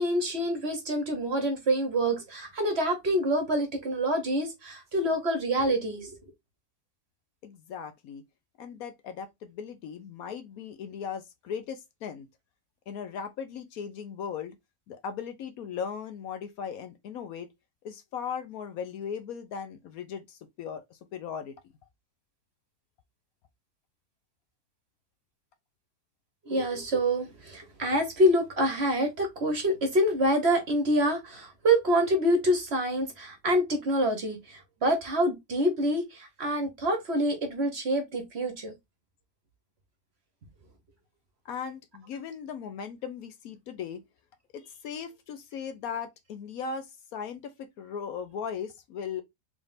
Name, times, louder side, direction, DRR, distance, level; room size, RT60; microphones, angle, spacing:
voice 1, 0.0-6.2 26.5-38.7, equal, 45° right, 1.1 m, -26 dB
voice 2, 7.4-8.2 8.6-12.3 12.9-14.6 14.9-17.5 17.8-21.5 41.4-44.0 44.5-49.2, left 7 dB, 70° left, 1.0 m, -38 dB
3.6 x 3.5 x 2.5 m
omnidirectional pair, 1.7 m